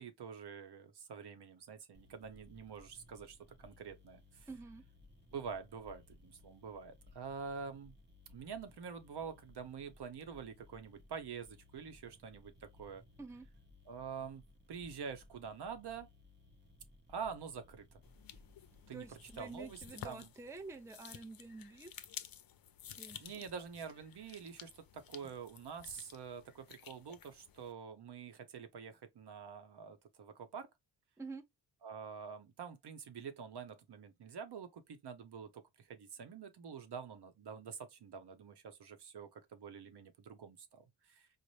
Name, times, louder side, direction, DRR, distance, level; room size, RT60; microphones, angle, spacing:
voice 1, 0.0-4.5 5.3-7.9 8.3-13.0 13.9-14.4 14.7-16.1 17.1-18.0 18.9-20.3 23.2-30.7 31.8-41.3, right 6 dB, 65° right, 0.8 m, -47 dB
sound 1, 1.9-19.9, left 2 dB, 25° right, 0.8 m, -62 dB
voice 2, 4.5-4.8 13.2-13.5 18.9-21.9 23.0-23.2 31.2-31.4, right 3 dB, 5° right, 0.5 m, -48 dB
sound 2, 18.0-27.7, left 9 dB, 50° left, 0.5 m, -53 dB
4.1 x 2.1 x 3.0 m
cardioid pair, 65°, 44 cm